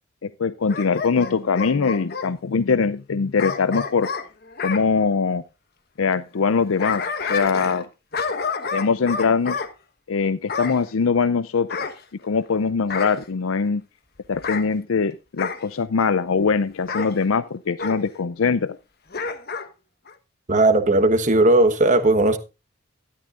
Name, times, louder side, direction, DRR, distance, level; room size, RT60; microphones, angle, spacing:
voice 1, 0.2-4.1 4.6-5.4 6.0-7.9 8.7-9.6 10.1-11.7 12.2-13.8 14.3-18.8, left 5 dB, 75° left, 0.5 m, -22 dB
Bark / Growling, 0.7-2.3 3.4-4.8 6.5-7.9 8.1-9.7 10.5-10.8 11.7-12.5 12.9-13.2 14.3-14.7 15.4-15.7 16.9-17.1 17.8-18.0 19.1-19.7 20.1-20.2, left 5 dB, 50° left, 1.3 m, -29 dB
voice 2, 20.5-22.4, right 2 dB, 35° right, 1.2 m, -17 dB
13.0 x 12.5 x 2.5 m
head